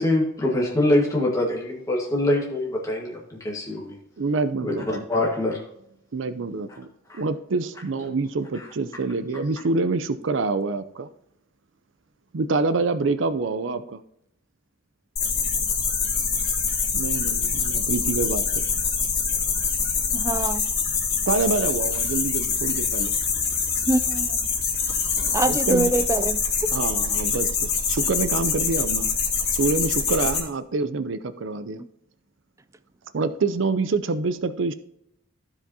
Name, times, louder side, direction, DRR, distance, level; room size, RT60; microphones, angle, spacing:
voice 1, 0.0-4.0 4.6-5.6 7.1-7.2 8.5-8.7, left 1 dB, 15° left, 1.5 m, -24 dB
voice 2, 4.2-5.0 6.1-6.9 7.2-11.1 12.3-14.0 16.9-18.6 21.3-23.1 25.2-25.9 26.7-29.1 29.5-31.8 33.1-34.7, right 3 dB, 70° right, 0.5 m, -26 dB
sound 1, 15.2-30.4, left 5 dB, 50° left, 2.9 m, -25 dB
voice 3, 20.1-20.6 23.9-24.6 25.3-26.7, right 2 dB, 15° right, 0.3 m, -25 dB
15.0 x 5.0 x 2.8 m
head